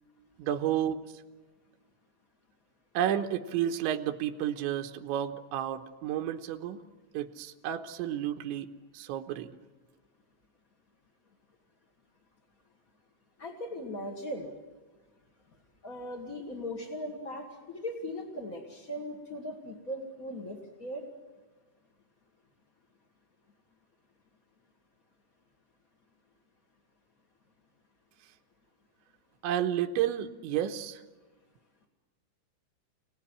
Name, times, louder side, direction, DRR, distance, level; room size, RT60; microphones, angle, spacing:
voice 1, 0.4-1.0 3.0-6.8 7.1-8.7 8.9-9.6 29.4-31.0, right 10 dB, 80° right, 5 dB, 3.4 m, -31 dB
voice 2, 13.4-14.5 15.8-21.0, left 1 dB, 40° left, 1 dB, 1.2 m, -39 dB
28.0 x 18.5 x 10.0 m, 1.3 s
omnidirectional pair, 5.4 m